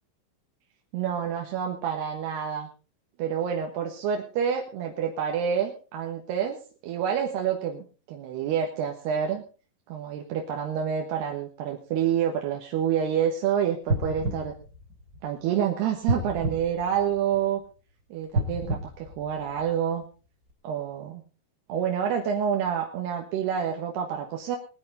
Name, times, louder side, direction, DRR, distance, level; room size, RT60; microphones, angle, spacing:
voice 1, 0.9-2.7 3.2-6.6 6.8-9.4 9.9-14.5 15.2-17.6 18.1-20.0 20.6-21.2 21.7-24.6, right 8 dB, 65° right, 1 dB, 3.0 m, -28 dB
sound 1, 13.8-15.5 16.0-17.6 18.2-19.9 20.5-20.6, right 1 dB, 25° right, 2.2 m, -31 dB
21.0 x 10.5 x 4.0 m, 0.35 s
omnidirectional pair, 5.9 m